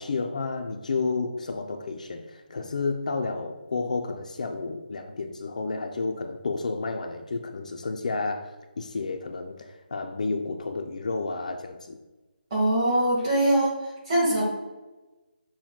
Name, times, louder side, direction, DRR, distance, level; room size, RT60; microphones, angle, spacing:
voice 1, 0.0-12.0, left 3 dB, 45° left, 4 dB, 0.4 m, -31 dB
voice 2, 12.5-13.8 14.1-14.5, right 1 dB, 25° right, -5 dB, 1.4 m, -22 dB
5.9 x 2.1 x 3.7 m, 1.1 s
hypercardioid pair, 170°, 6 cm